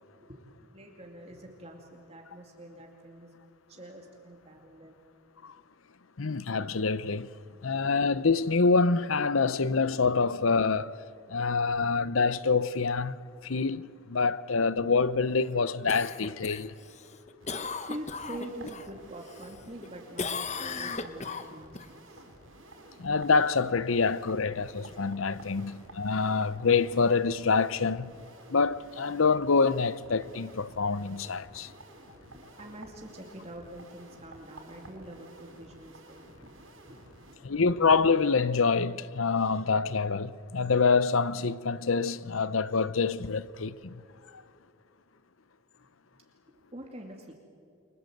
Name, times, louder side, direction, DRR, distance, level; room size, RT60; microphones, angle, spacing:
voice 1, 0.2-3.3 3.7-5.0 17.8-22.3 25.5-25.7 32.1-36.5 36.9-37.5 46.5-47.3, right 1 dB, 30° right, 2.5 m, -45 dB
voice 2, 6.2-7.3 7.6-10.9 11.3-16.8 23.0-28.1 28.5-31.7 37.4-44.0 44.3-44.4, left 4 dB, 75° left, 0.8 m, -26 dB
Cough, 15.9-18.9 19.3-19.9 20.2-21.9 26.3-26.4, left 5 dB, 35° left, 1.1 m, -37 dB
sound 1, 17.4-37.4, right 2 dB, 75° right, 5.8 m, -52 dB
30.0 x 24.0 x 8.0 m
head